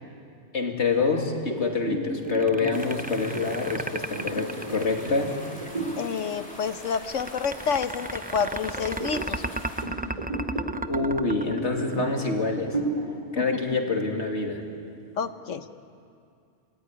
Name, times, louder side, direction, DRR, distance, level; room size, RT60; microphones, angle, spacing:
voice 1, 0.5-5.3 10.9-12.7 13.3-14.6, left 3 dB, 70° left, 2 dB, 3.0 m, -26 dB
sound 1, 1.0-6.1 6.5-6.8 7.2-8.0 8.6-15.3, right 1 dB, 30° right, 4.0 m, -34 dB
sound 2, 2.2-5.4 6.8-12.3, right 2 dB, 15° right, 0.3 m, -33 dB
sound 3, 2.7-9.8, equal, 5° left, 3.5 m, -43 dB
voice 2, 6.0-9.4 13.4-13.6 15.2-15.6, left 6 dB, 85° left, 11 dB, 1.4 m, -29 dB
28.0 x 19.5 x 9.9 m, 2.4 s
omnidirectional pair, 1.2 m